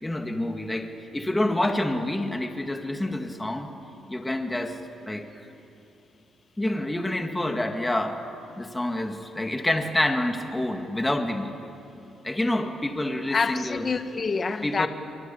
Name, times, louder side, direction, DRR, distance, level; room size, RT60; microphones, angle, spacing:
voice 1, 0.0-3.7 4.1-4.8 5.0-5.5 6.6-8.2 8.6-11.6 12.2-13.9 14.6-14.9, left 1 dB, 10° left, 1.9 m, -27 dB
voice 2, 13.3-14.9, left 4 dB, 40° left, 1.2 m, -27 dB
24.5 x 23.5 x 8.5 m
cardioid pair, 90°, 0 cm